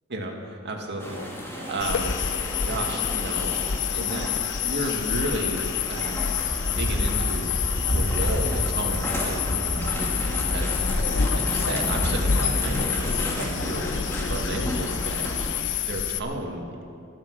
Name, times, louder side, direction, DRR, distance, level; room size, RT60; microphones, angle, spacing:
voice 1, 0.1-2.2 2.6-3.6 3.9-6.3 6.7-7.5 7.9-10.9 11.3-13.9 14.3-15.2 15.8-16.7, right 1 dB, 55° right, 1 dB, 2.1 m, -33 dB
sound 1, 1.0-15.6, equal, 10° left, 2.4 m, -31 dB
sound 2, 1.1-2.2 2.6-2.7 2.9-3.4 3.8-4.6 5.0-5.2 5.7-6.5 6.9-10.3 10.8-10.9 11.1-11.6 12.1-12.9 13.4-13.6 14.1-14.3 14.8-15.0 15.5-15.8, right 6 dB, 70° right, 1.8 m, -45 dB
sound 3, 1.8-16.2, left 6 dB, 60° left, 0.8 m, -28 dB
24.0 x 9.1 x 6.3 m, 2.5 s
head